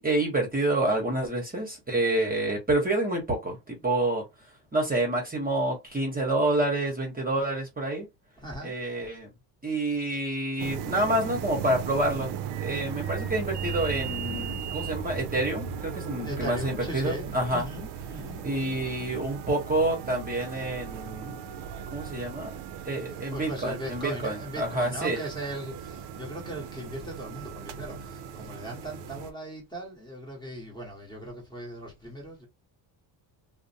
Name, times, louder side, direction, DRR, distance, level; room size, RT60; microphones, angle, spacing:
voice 1, 0.0-4.2 4.7-8.1 8.6-9.3 9.6-12.3 12.6-17.6 18.4-21.4 21.9-22.5 22.8-25.2, right 1 dB, 20° right, 0.9 m, -28 dB
voice 2, 8.4-8.7 16.2-18.4 23.0-32.5, right 1 dB, 10° left, 1.0 m, -38 dB
sound 1, 10.6-29.3, right 7 dB, 60° right, 0.5 m, -37 dB
2.5 x 2.1 x 2.6 m
cardioid pair, 115°, 46 cm